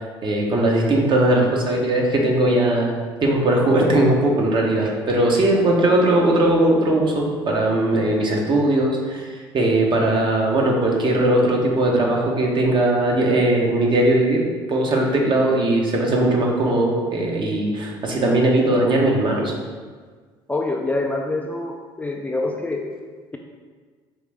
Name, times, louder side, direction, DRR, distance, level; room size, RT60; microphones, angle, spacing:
voice 1, 0.2-2.9 3.2-9.2 9.5-14.4 14.7-19.5, right 1 dB, 40° right, -1 dB, 0.9 m, -19 dB
voice 2, 20.5-22.9, left 2 dB, 10° left, 1 dB, 0.4 m, -26 dB
4.6 x 2.6 x 3.4 m, 1.5 s
hypercardioid pair, 70°, 12 cm